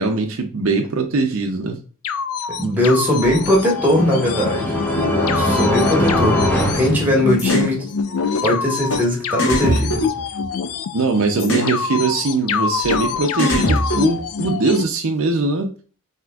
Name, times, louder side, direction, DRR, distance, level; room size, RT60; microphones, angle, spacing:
voice 1, 0.0-1.8 10.9-15.7, right 3 dB, 65° right, 4 dB, 0.5 m, -21 dB
sound 1, 2.0-14.8, left 6 dB, 80° left, 0.4 m, -26 dB
voice 2, 2.6-4.7 5.3-6.5 6.7-7.8 8.4-10.0, left 1 dB, 10° right, -1 dB, 1.5 m, -19 dB
sound 2, 3.3-7.8, left 1 dB, 10° left, 0.9 m, -21 dB
sound 3, 7.4-7.7 8.9-9.0 9.4-10.8 11.4-11.7 12.9-13.0 13.4-14.5, equal, 60° left, 1.1 m, -21 dB
5.8 x 2.9 x 2.3 m, 0.37 s
head